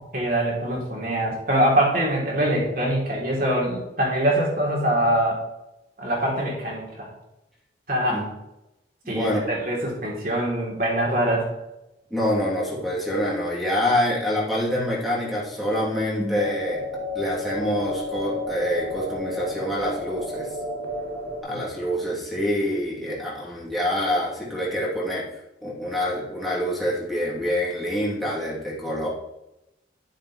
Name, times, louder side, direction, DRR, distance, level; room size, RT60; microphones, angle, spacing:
voice 1, 0.1-5.4 6.0-7.1 7.9-8.2 9.1-11.5, right 1 dB, 50° right, -3 dB, 3.2 m, -23 dB
voice 2, 9.0-9.4 12.1-16.8 17.1-20.5 21.4-25.3 25.6-29.1, equal, ahead, -6 dB, 3.0 m, -26 dB
sound 1, 16.3-21.4, left 1 dB, 75° right, 2.1 m, -32 dB
12.5 x 7.4 x 3.2 m, 0.92 s
head